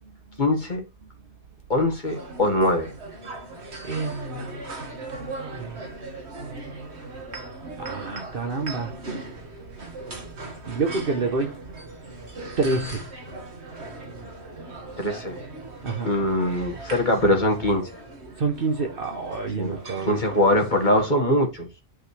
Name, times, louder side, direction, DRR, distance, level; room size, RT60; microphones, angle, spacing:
voice 1, 0.4-0.8 1.7-2.9 15.0-15.4 16.0-17.9 19.6-19.7 20.1-21.7, left 1 dB, 45° left, 2.0 m, -22 dB
sound 1, 2.0-21.1, right 2 dB, 80° right, 2.1 m, -39 dB
voice 2, 3.8-4.7 5.1-5.8 7.8-8.9 10.7-11.6 12.6-13.1 15.8-16.1 18.4-20.2, right 4 dB, 55° right, 1.2 m, -28 dB
9.9 x 5.6 x 3.3 m
omnidirectional pair, 1.1 m